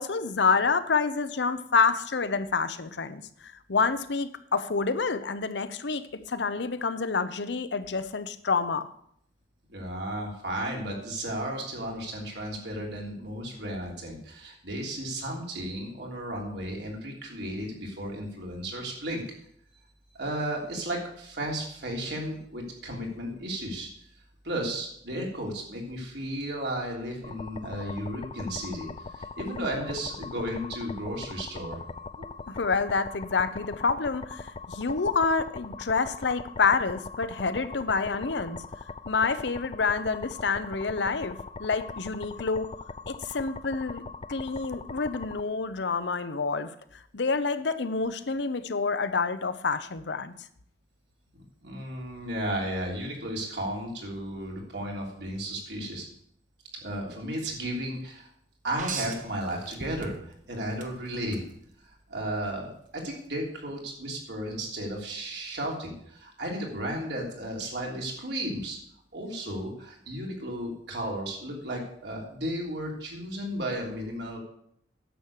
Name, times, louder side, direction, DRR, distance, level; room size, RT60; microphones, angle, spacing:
voice 1, 0.0-8.9 32.5-38.6 39.1-42.7 43.1-44.0 44.3-50.3, left 4 dB, 75° left, 12 dB, 0.7 m, -28 dB
voice 2, 9.7-19.2 20.1-23.9 24.4-31.8 32.2-32.3 51.6-56.1 56.8-58.3 58.6-60.2 60.5-61.4 62.1-68.8 69.1-74.4, right 1 dB, 70° right, -1 dB, 3.2 m, -34 dB
sound 1, 27.2-45.4, left 4 dB, 30° left, 0.3 m, -41 dB
sound 2, 58.8-60.4 60.8-61.4 63.0-63.1, right 5 dB, 45° right, 1.1 m, -37 dB
10.0 x 7.3 x 6.5 m, 0.69 s
head